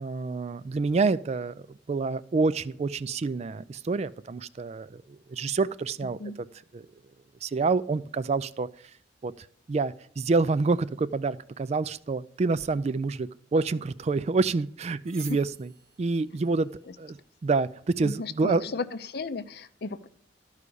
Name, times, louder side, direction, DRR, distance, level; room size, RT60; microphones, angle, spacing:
voice 1, 0.0-5.0 5.3-6.2 6.7-6.9 7.4-8.7 9.2-15.7 16.0-16.7 17.0-18.6, right 3 dB, 35° right, 15 dB, 0.3 m, -27 dB
sound 1, 13.8-18.5, right 5 dB, 55° right, 2.1 m, -53 dB
voice 2, 18.0-20.1, left 4 dB, 60° left, 13 dB, 0.6 m, -34 dB
12.5 x 4.9 x 6.8 m, 0.63 s
head